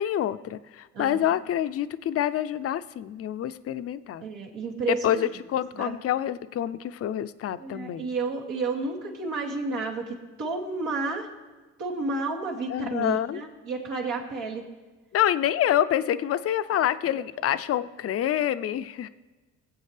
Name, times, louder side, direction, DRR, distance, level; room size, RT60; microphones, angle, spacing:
voice 1, 0.0-4.2 4.9-8.1 12.7-13.4 15.1-19.1, left 11 dB, 50° left, 13 dB, 0.5 m, -27 dB
voice 2, 4.2-5.3 5.7-6.0 7.6-11.3 11.8-14.6, right 3 dB, 80° right, -3 dB, 2.4 m, -31 dB
21.0 x 7.9 x 3.3 m, 1.2 s
cardioid pair, 90°, 30 cm